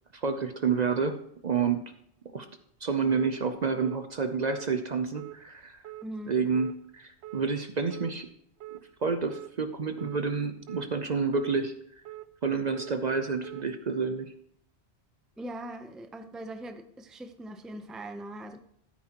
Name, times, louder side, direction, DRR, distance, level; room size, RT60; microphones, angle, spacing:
voice 1, 0.1-1.8 2.3-2.5 2.8-5.8 6.3-8.3 8.7-11.7 12.4-14.3, right 5 dB, 45° right, 0.7 m, -29 dB
sound 1, 3.1-3.3 3.8-4.0 4.5-4.7 5.1-5.4 5.8-6.1 6.5-6.7 7.2-7.4 7.9-8.1 8.6-8.8 9.3-9.5 10.0-10.2 10.7-10.9 11.4-11.6 12.0-12.3 12.7-12.9 13.4-13.6, right 15 dB, 75° right, 0.9 m, -43 dB
voice 2, 6.0-6.3 15.4-18.6, right 1 dB, ahead, 0.6 m, -41 dB
14.0 x 8.5 x 2.9 m
omnidirectional pair, 1.1 m